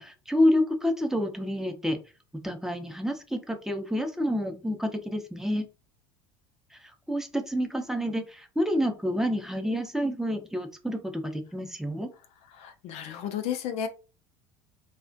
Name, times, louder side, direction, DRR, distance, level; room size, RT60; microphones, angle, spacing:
voice 1, 0.0-2.0 2.4-5.6 7.1-12.1, equal, 5° right, 4 dB, 0.5 m, -28 dB
voice 2, 12.5-13.9, left 9 dB, 55° left, 8 dB, 0.4 m, -33 dB
2.3 x 2.1 x 2.5 m, 0.32 s
hypercardioid pair, 75°, 13 cm